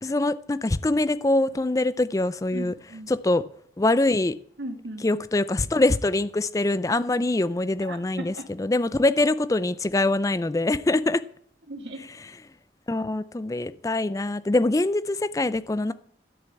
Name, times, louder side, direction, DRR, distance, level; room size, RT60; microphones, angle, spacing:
voice 1, 0.0-2.7 3.1-3.4 3.8-4.3 5.0-11.2 12.9-15.9, left 2 dB, 20° left, 0.4 m, -24 dB
voice 2, 2.5-3.1 4.6-5.2 7.9-8.4 11.7-12.0, right 1 dB, 80° right, 2.0 m, -37 dB
12.0 x 6.8 x 8.3 m
head